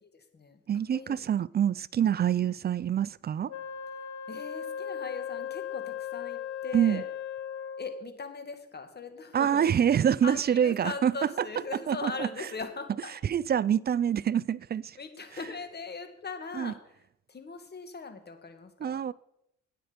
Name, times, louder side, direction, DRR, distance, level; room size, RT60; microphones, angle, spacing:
voice 1, 0.0-0.6 0.9-1.2 2.4-2.5 4.3-7.1 7.8-9.6 10.2-13.2 15.0-16.9 17.3-19.0, left 4 dB, 35° left, 1.9 m, -40 dB
voice 2, 0.7-3.5 6.7-7.0 9.3-11.1 11.9-12.3 13.3-15.0 16.5-16.7 18.8-19.1, right 9 dB, 35° right, 0.4 m, -26 dB
Wind instrument woodwind instrument, 3.5-8.1, left 8 dB, 70° left, 1.0 m, -37 dB
12.0 x 9.2 x 5.1 m
cardioid pair, 90°, 30 cm